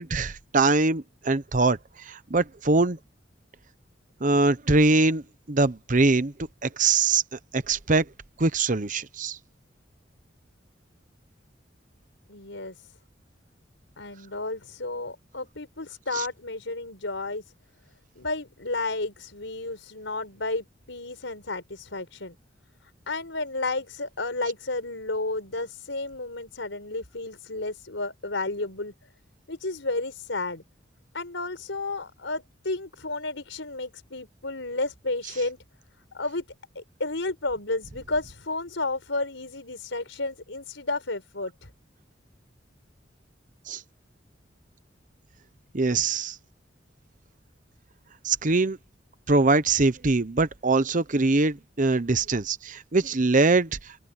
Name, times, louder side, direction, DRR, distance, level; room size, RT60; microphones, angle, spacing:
voice 1, 0.0-1.8 2.1-3.0 4.2-6.3 6.6-7.2 7.5-8.1 8.4-9.4 16.1-16.2 43.7-43.8 45.7-46.4 48.2-48.8 49.3-53.7, right 3 dB, 45° right, 0.9 m, -23 dB
voice 2, 12.3-12.7 14.0-17.4 18.1-22.4 23.1-28.9 29.5-30.6 31.1-35.6 36.1-36.4 36.7-41.5, left 2 dB, 85° left, 4.8 m, -32 dB
open air
head